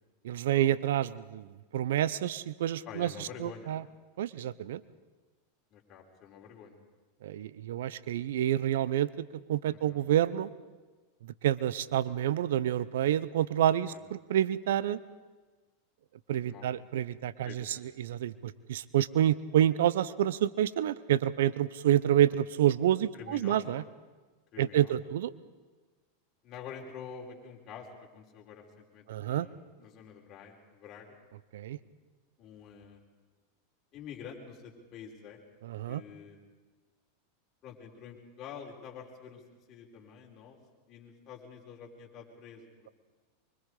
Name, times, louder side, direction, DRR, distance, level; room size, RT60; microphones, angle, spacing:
voice 1, 0.2-1.5 1.7-3.8 4.2-4.8 7.2-10.5 11.2-15.0 16.3-23.8 24.6-25.3 29.1-29.5 31.5-31.8 35.6-36.0, right 11 dB, 75° right, 17 dB, 0.9 m, -28 dB
voice 2, 2.8-3.8 5.7-6.8 9.7-10.0 13.8-14.0 16.5-16.7 17.4-17.9 21.9-22.3 23.1-23.7 24.5-24.9 26.4-27.9 28.1-31.2 32.4-33.0 33.9-35.4 35.9-36.4 37.6-39.4 39.7-40.6 40.9-42.9, left 7 dB, 40° left, -1 dB, 5.1 m, -47 dB
25.0 x 24.0 x 5.0 m, 1.3 s
hypercardioid pair, 105°, 0 cm